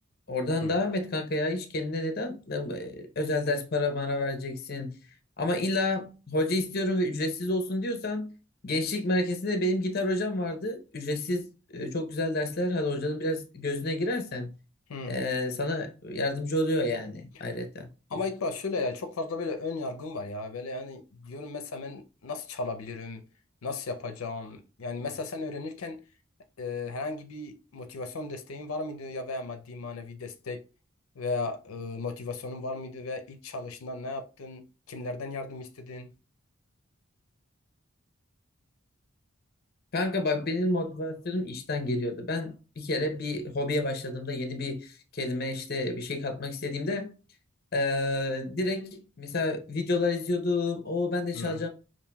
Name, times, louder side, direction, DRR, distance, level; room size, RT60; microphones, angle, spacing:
voice 1, 0.3-5.0 5.4-8.3 8.6-14.5 15.1-17.9 39.9-47.1 47.7-51.7, left 2 dB, 45° left, 0.7 m, -29 dB
voice 2, 18.1-23.2 23.6-26.0 26.6-30.6 31.2-36.1 51.3-51.6, left 3 dB, 85° left, 0.5 m, -35 dB
5.5 x 2.6 x 2.2 m
head